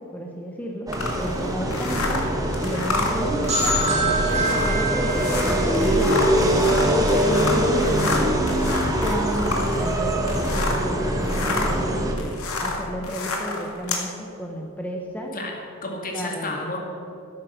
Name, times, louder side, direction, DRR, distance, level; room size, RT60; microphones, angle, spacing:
voice 1, 0.1-0.9 1.2-2.2 2.6-8.7 9.0-12.2 12.6-15.3 16.1-16.6, equal, 5° left, 0 dB, 1.0 m, -31 dB
sound 1, 0.9-10.9 11.2-14.1, left 3 dB, 75° left, 2.0 m, -29 dB
sound 2, 0.9-12.1, equal, 15° right, 1.4 m, -23 dB
sound 3, 3.5-7.1, right 2 dB, 30° right, 2.9 m, -27 dB
voice 2, 15.3-16.8, left 2 dB, 40° left, 1 dB, 2.2 m, -31 dB
13.0 x 9.6 x 6.5 m, 2.8 s
head